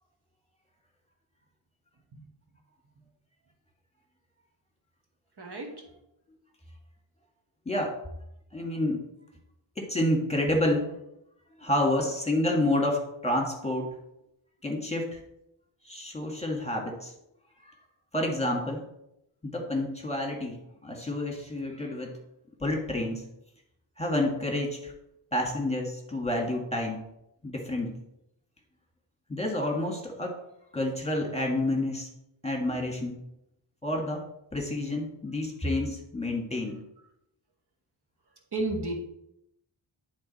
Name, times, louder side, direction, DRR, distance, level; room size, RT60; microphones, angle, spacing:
voice 1, 5.4-5.9 38.5-38.9, right 2 dB, 55° right, 1 dB, 1.5 m, -32 dB
voice 2, 7.7-8.0 8.5-9.0 9.8-11.0 11.6-13.9 14.6-15.2 15.8-17.1 17.7-17.8 18.1-18.8 19.4-22.2 22.6-23.2 24.0-24.9 25.3-27.0 27.4-28.0 29.3-30.4 30.7-32.1 32.4-33.2 33.8-34.3 34.5-36.7, left 1 dB, 15° left, 0 dB, 1.7 m, -29 dB
10.5 x 3.5 x 4.2 m, 0.81 s
wide cardioid pair, 75°, 47 cm